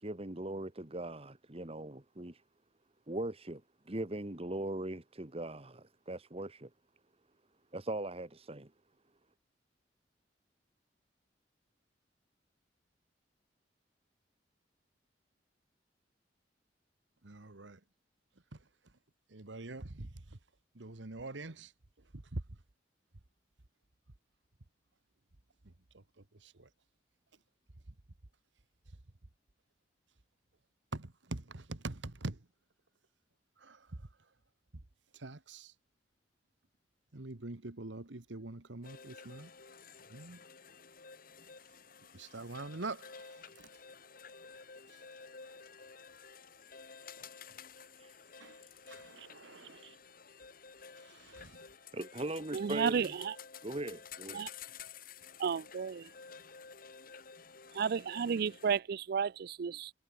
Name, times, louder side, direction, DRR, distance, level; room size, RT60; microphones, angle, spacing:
voice 1, 0.0-2.4 3.1-3.6 3.9-6.7 7.7-8.7 47.9-48.2 48.6-48.7 51.9-53.1 53.6-54.4, right 1 dB, 35° right, 1.6 m, -40 dB
voice 2, 17.2-17.8 18.5-19.0 19.3-20.4 20.7-21.7 22.0-22.6 25.6-26.7 27.9-28.0 28.9-29.0 30.9-32.5 33.6-34.3 34.7-34.8 35.1-35.7 37.1-39.5 40.1-40.4 42.1-43.7 44.9-45.0 48.4-50.0 50.9-51.7, right 2 dB, 90° right, 1.5 m, -45 dB
sound 1, 38.8-58.8, left 6 dB, 50° left, 2.2 m, -52 dB
voice 3, 52.5-53.4 54.3-54.5 55.4-56.1 57.7-59.9, right 6 dB, 60° right, 0.4 m, -33 dB
head